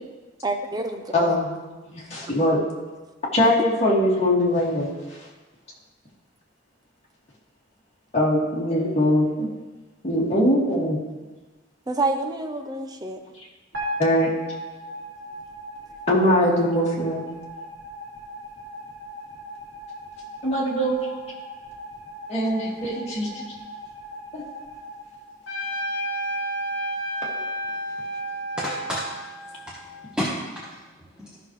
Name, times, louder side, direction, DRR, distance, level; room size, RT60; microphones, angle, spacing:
voice 1, 0.4-1.4 2.2-2.3 3.4-3.5 11.9-13.2, right 2 dB, 20° right, 5 dB, 0.7 m, -28 dB
voice 2, 1.1-1.5 1.9-2.6 3.3-5.2 8.1-9.5 10.0-11.0 14.0-14.3 16.1-17.2 20.4-21.2 22.3-23.4 24.3-24.4, equal, 35° left, -5 dB, 2.1 m, -22 dB
sound 1, 13.7-26.0, equal, 75° right, 3.0 m, -38 dB
Trumpet, 25.5-30.2, right 1 dB, 75° left, 1.1 m, -31 dB
voice 3, 28.6-29.0 29.4-29.8 30.1-31.4, equal, 5° right, -7 dB, 1.2 m, -32 dB
14.0 x 6.0 x 3.2 m, 1.2 s
head